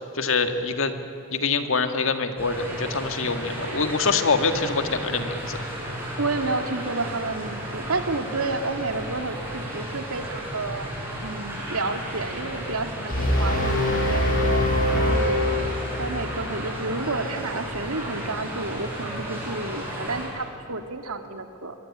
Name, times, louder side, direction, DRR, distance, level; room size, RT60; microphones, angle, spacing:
voice 1, 0.2-0.9 1.3-5.6, left 4 dB, 65° left, 7 dB, 1.8 m, -25 dB
sound 1, 2.4-20.3, equal, 10° right, 7.6 m, -34 dB
voice 2, 6.2-10.9 11.2-14.2 14.9-15.5 16.0-21.7, right 3 dB, 90° right, 6 dB, 2.1 m, -30 dB
sound 2, 13.1-16.3, left 1 dB, 40° left, 5.6 m, -23 dB
24.5 x 23.5 x 9.9 m, 2.9 s
head